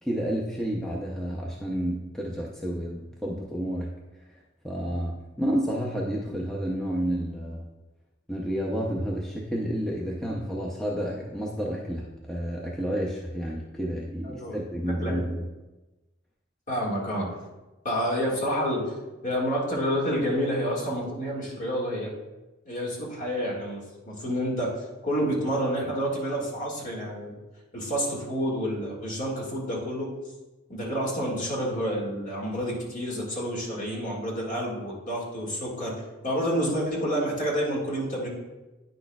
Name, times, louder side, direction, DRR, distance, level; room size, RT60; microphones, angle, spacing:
voice 1, 0.0-3.9 4.6-7.7 8.3-15.5, equal, 5° left, -4 dB, 0.5 m, -30 dB
voice 2, 14.2-14.6 15.0-15.2 16.7-17.3 17.8-18.9 19.2-22.1 22.7-24.7 25.0-27.3 27.7-30.1 30.7-35.9 36.2-38.3, equal, 40° left, -4 dB, 1.8 m, -29 dB
9.4 x 6.2 x 2.3 m, 1.1 s
head